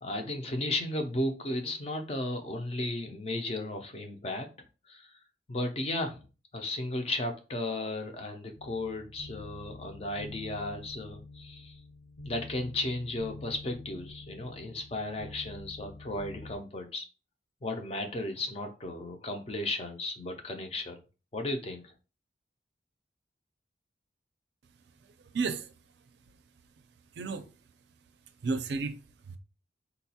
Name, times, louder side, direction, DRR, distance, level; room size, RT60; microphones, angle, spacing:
voice 1, 0.0-4.5 4.9-5.1 5.5-6.2 6.5-11.8 12.2-17.0 17.6-21.0 21.3-21.9, left 2 dB, 30° left, 0.4 m, -35 dB
sound 1, 8.5-16.6, left 3 dB, 70° left, 0.8 m, -47 dB
voice 2, 24.8-26.3 26.8-26.9 27.1-27.5 28.4-29.0 29.3-29.4, right 4 dB, 65° right, 0.4 m, -35 dB
3.8 x 2.2 x 2.7 m
head